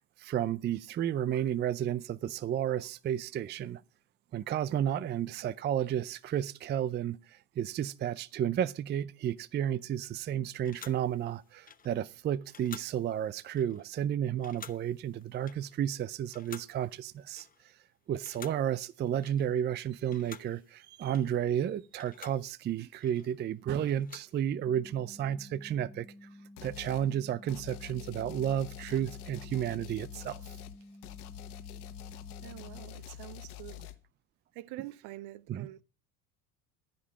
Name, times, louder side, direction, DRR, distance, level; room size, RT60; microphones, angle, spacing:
voice 1, 0.0-3.8 4.3-17.5 18.1-26.1 26.6-30.4 35.5-35.7, right 10 dB, 25° right, 0.4 m, -32 dB
sound 1, 10.7-17.9 18.2-19.8 20.0-24.4, left 7 dB, 20° left, 0.7 m, -53 dB
sound 2, 24.6-32.9, left 1 dB, 5° right, 1.1 m, -52 dB
sound 3, 26.6-27.1 27.5-34.0, left 10 dB, 80° left, 1.2 m, -46 dB
voice 2, 32.4-33.9 34.5-35.8, right 17 dB, 60° right, 0.7 m, -46 dB
13.5 x 5.4 x 7.1 m
supercardioid pair, 90°, 43 cm